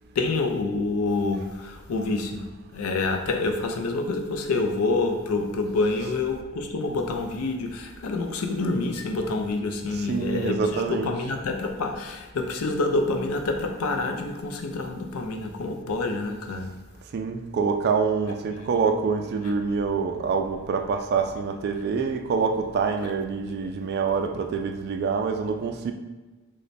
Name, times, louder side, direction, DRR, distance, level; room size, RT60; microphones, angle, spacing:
voice 1, 0.2-2.4 2.7-16.7, left 3 dB, 75° left, 4 dB, 0.4 m, -27 dB
voice 2, 9.9-11.1 17.1-25.9, right 5 dB, 50° right, 5 dB, 0.3 m, -26 dB
3.1 x 2.1 x 4.0 m, 1.2 s
head